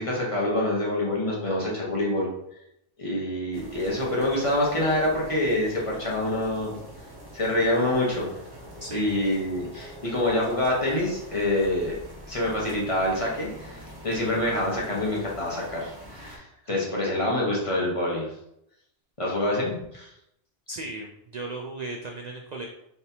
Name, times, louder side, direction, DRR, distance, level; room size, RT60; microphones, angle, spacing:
voice 1, 0.0-2.3 3.0-6.8 7.3-8.3 8.9-11.9 12.3-18.3 19.2-20.1, left 1 dB, 30° left, -4 dB, 1.0 m, -26 dB
sound 1, 3.5-16.4, equal, 20° right, 0.8 m, -44 dB
voice 2, 20.7-22.7, right 2 dB, 70° right, 1 dB, 0.4 m, -36 dB
4.1 x 3.4 x 2.8 m, 0.80 s
omnidirectional pair, 1.2 m